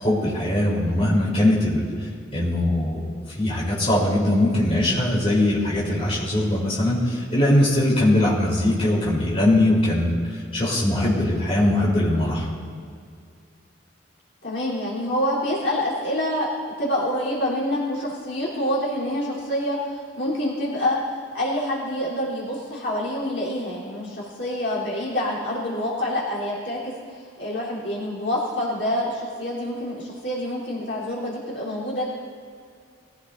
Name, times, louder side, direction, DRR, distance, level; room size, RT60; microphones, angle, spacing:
voice 1, 0.0-1.8 2.3-3.1 3.4-12.5, left 1 dB, 30° left, -6 dB, 3.6 m, -21 dB
voice 2, 14.4-21.1 21.3-26.9 27.4-32.1, left 1 dB, 65° left, -7 dB, 3.6 m, -27 dB
21.5 x 15.5 x 2.7 m, 2.2 s
head